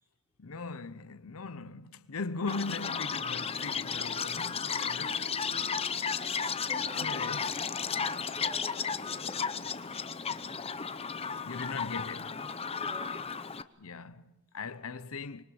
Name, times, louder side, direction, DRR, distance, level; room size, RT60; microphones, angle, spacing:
voice 1, 0.4-5.5 6.9-7.5 11.4-12.4 13.8-15.4, left 4 dB, 85° left, 0.9 m, -39 dB
Chirp tweet, 2.5-13.6, left 6 dB, 30° left, 0.8 m, -34 dB
voice 2, 6.7-7.3 8.1-9.4 12.7-13.1, equal, 10° right, 4.8 m, -49 dB
26.0 x 24.5 x 7.1 m
head